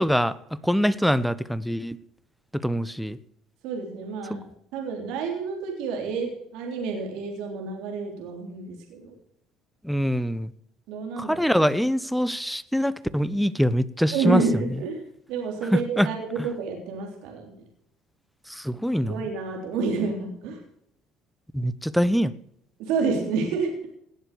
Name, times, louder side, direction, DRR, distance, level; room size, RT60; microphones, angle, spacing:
voice 1, 0.0-2.0 2.5-3.2 4.3-4.4 9.8-10.5 11.2-14.4 15.7-16.1 18.5-19.2 21.5-22.3, equal, ahead, 16 dB, 0.9 m, -24 dB
voice 2, 3.6-9.1 10.9-11.5 14.1-17.6 19.0-20.6 22.8-23.7, right 4 dB, 75° right, 2 dB, 3.5 m, -29 dB
18.5 x 7.2 x 6.8 m, 0.71 s
supercardioid pair, 85°, 0 cm